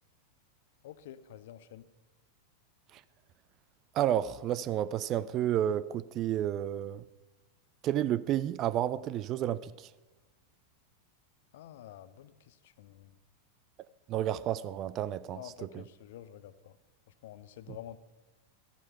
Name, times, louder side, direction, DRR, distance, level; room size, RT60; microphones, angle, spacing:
voice 1, 0.8-1.9 11.5-13.2 15.3-16.8 17.2-18.0, left 12 dB, 55° left, 0.7 m, -49 dB
voice 2, 3.9-7.0 7.8-9.7 14.1-15.8, right 11 dB, 35° right, 0.5 m, -31 dB
14.5 x 11.5 x 5.7 m
figure-of-eight pair, 90°, 0 cm